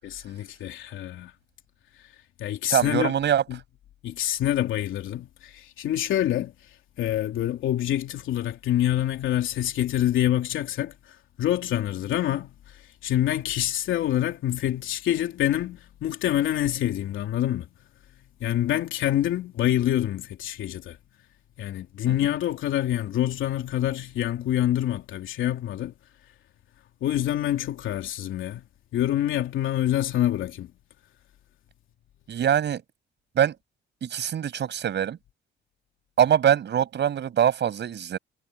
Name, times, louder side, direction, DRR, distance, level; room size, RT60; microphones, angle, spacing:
voice 1, 0.0-1.3 2.4-3.1 3.5-3.6 4.0-6.5 7.0-17.7 18.4-21.0 21.6-25.9 27.0-28.6 28.9-30.7, left 12 dB, 80° left, 3.2 m, -26 dB
voice 2, 2.7-3.4 22.1-22.2 32.3-32.8 33.3-33.6 34.0-35.2 36.2-38.2, right 9 dB, 60° right, 6.6 m, -23 dB
cardioid pair, 90°, 20 cm